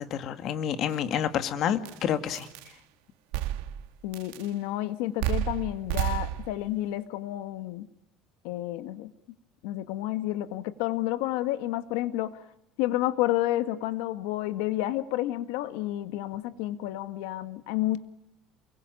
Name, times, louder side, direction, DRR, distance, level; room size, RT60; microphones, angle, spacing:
voice 1, 0.0-2.5, left 9 dB, 40° left, 9 dB, 2.0 m, -29 dB
sound 1, 0.9-1.0 1.9-2.0 2.3-2.7 3.3-3.9 4.1-4.5 5.2-6.7, right 13 dB, 85° right, 1.8 m, -31 dB
voice 2, 4.0-7.9 8.4-9.1 9.6-12.4 12.8-18.0, left 15 dB, 80° left, 11 dB, 1.7 m, -30 dB
29.5 x 22.0 x 9.1 m, 0.81 s
cardioid pair, 160°, 0 cm